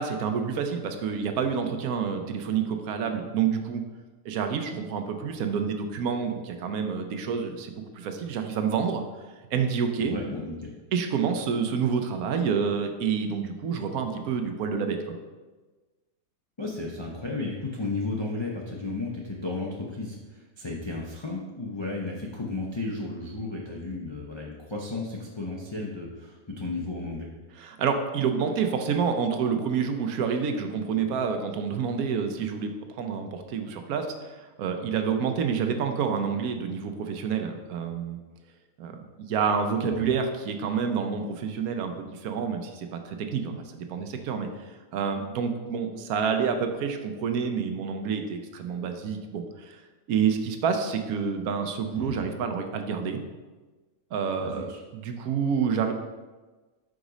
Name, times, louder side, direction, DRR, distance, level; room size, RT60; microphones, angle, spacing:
voice 1, 0.0-3.8 4.2-9.0 9.5-10.2 10.9-15.2 27.6-32.7 33.0-38.2 38.8-39.0 39.3-44.5 44.9-49.8 50.1-53.2 54.1-55.9, right 6 dB, 75° right, 6 dB, 1.1 m, -28 dB
voice 2, 10.0-10.7 16.6-27.3 39.8-40.0 51.9-52.2 54.4-54.8, left 2 dB, 45° left, -3 dB, 0.3 m, -34 dB
5.1 x 4.0 x 4.9 m, 1.2 s
omnidirectional pair, 1.6 m